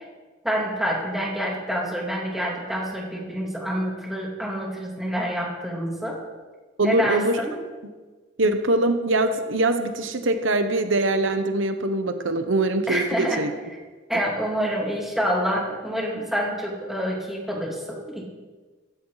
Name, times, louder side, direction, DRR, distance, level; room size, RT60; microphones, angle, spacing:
voice 1, 0.4-6.2 6.8-7.6 12.9-13.4 14.1-18.3, equal, ahead, -3 dB, 3.0 m, -27 dB
voice 2, 6.8-7.4 8.4-13.5, right 2 dB, 85° right, 8 dB, 1.0 m, -23 dB
15.5 x 14.5 x 4.1 m, 1.4 s
head